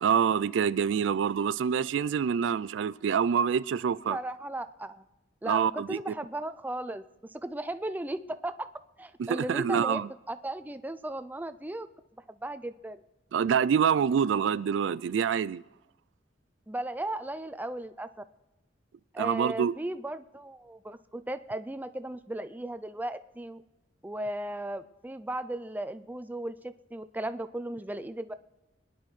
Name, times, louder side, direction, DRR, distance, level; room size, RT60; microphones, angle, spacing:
voice 1, 0.0-4.2 5.4-6.0 9.2-10.1 13.3-15.6 19.2-19.8, right 7 dB, 80° right, 0.3 m, -26 dB
voice 2, 4.1-5.0 5.4-7.0 7.3-8.7 9.0-11.9 12.3-13.0 16.7-18.1 19.1-23.6 24.0-28.3, right 1 dB, 10° right, 0.4 m, -36 dB
25.5 x 10.0 x 3.2 m
head